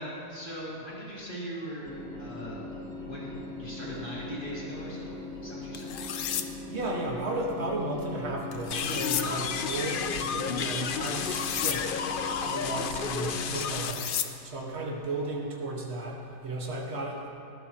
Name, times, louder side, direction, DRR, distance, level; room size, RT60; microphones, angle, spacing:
voice 1, 0.0-2.6 3.1-5.9, equal, 30° left, -8 dB, 3.9 m, -40 dB
sound 1, 1.8-13.5, left 2 dB, 5° left, 1.7 m, -40 dB
sound 2, 5.7-6.5 8.5-9.2 11.1-11.8 13.6-14.3, left 9 dB, 60° left, 0.9 m, -33 dB
voice 2, 6.7-11.9 12.4-14.2 14.4-17.3, right 2 dB, 40° right, -2 dB, 1.9 m, -34 dB
sound 3, 8.7-13.9, left 6 dB, 80° left, 0.4 m, -32 dB
19.0 x 13.5 x 3.1 m, 2.6 s
omnidirectional pair, 1.7 m